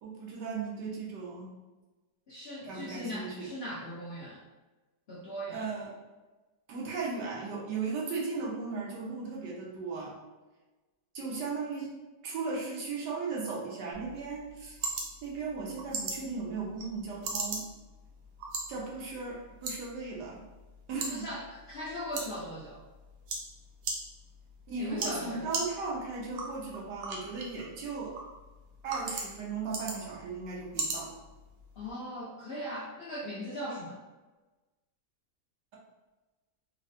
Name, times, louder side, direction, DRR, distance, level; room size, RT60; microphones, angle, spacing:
voice 1, 0.0-1.5 2.6-3.5 5.5-5.9 6.7-10.1 11.1-11.9 12.2-14.8 15.2-17.7 18.7-20.4 20.9-21.3 24.7-28.1 28.8-31.1, right 4 dB, 85° right, -4 dB, 1.4 m, -36 dB
voice 2, 2.3-4.4 5.1-5.6 21.1-22.8 24.8-25.4 31.7-34.0, equal, 60° left, -8 dB, 0.6 m, -39 dB
sound 1, 13.9-31.9, right 3 dB, 65° right, 1.0 m, -40 dB
3.9 x 2.1 x 2.5 m, 1.2 s
omnidirectional pair, 1.8 m